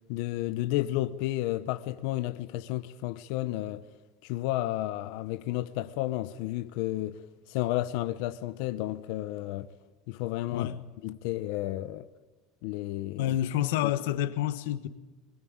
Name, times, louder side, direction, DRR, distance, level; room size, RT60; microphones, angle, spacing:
voice 1, 0.1-3.8 4.2-7.2 7.5-9.7 10.1-10.7 11.0-12.1 12.6-13.2 13.8-13.9, left 15 dB, 60° left, 0.9 m, -32 dB
voice 2, 13.2-14.9, left 12 dB, 85° left, 1.5 m, -28 dB
22.5 x 22.0 x 8.8 m
cardioid pair, 170°, 0 cm